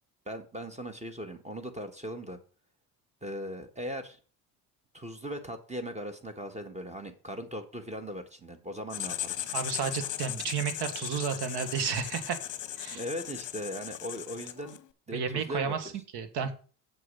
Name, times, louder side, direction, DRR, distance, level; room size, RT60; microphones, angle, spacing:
voice 1, 0.3-2.4 3.2-4.2 4.9-9.5 12.9-14.8 15.1-15.9, equal, 15° right, 9 dB, 1.6 m, -39 dB
Writing, 8.9-14.9, left 12 dB, 40° left, 0.9 m, -38 dB
voice 2, 9.5-12.4 12.8-13.0 15.1-16.5, right 6 dB, 55° right, 9 dB, 1.8 m, -32 dB
7.4 x 6.5 x 5.6 m, 0.38 s
hypercardioid pair, 75°, 48 cm